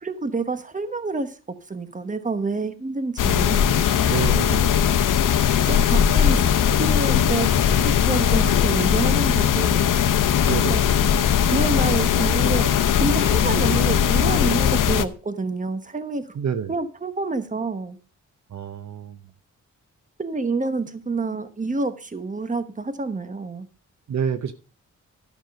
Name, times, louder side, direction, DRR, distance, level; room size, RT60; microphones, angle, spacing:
voice 1, 0.0-1.4 1.7-3.9 5.6-6.5 6.8-7.5 7.8-9.9 10.7-10.8 11.5-16.2 16.7-18.0 20.2-23.7, right 3 dB, 25° right, 1.1 m, -28 dB
sound 1, 3.2-15.0, left 9 dB, 85° left, 0.7 m, -19 dB
voice 2, 4.1-4.9 10.4-10.8 16.3-16.7 18.5-19.2 24.1-24.5, right 7 dB, 60° right, 0.8 m, -28 dB
12.0 x 6.0 x 5.2 m
cardioid pair, 90°, 31 cm